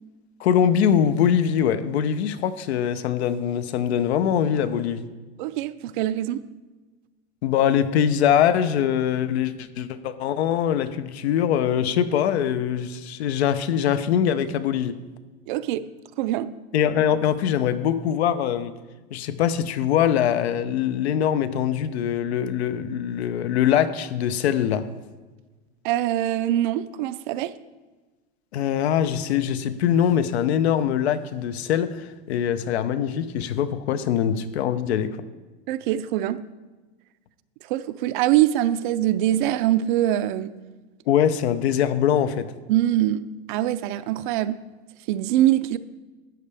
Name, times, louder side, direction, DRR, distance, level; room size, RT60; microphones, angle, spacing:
voice 1, 0.4-5.1 7.4-15.0 16.7-18.7 19.1-24.9 28.5-35.2 41.1-42.5, left 9 dB, 85° left, 0.8 m, -23 dB
voice 2, 5.4-6.4 15.5-15.9 16.2-16.5 25.8-27.5 35.7-36.4 37.7-40.5 42.7-44.6 45.1-45.8, right 13 dB, 50° right, 0.5 m, -23 dB
12.5 x 8.5 x 3.4 m
supercardioid pair, 155°, 31 cm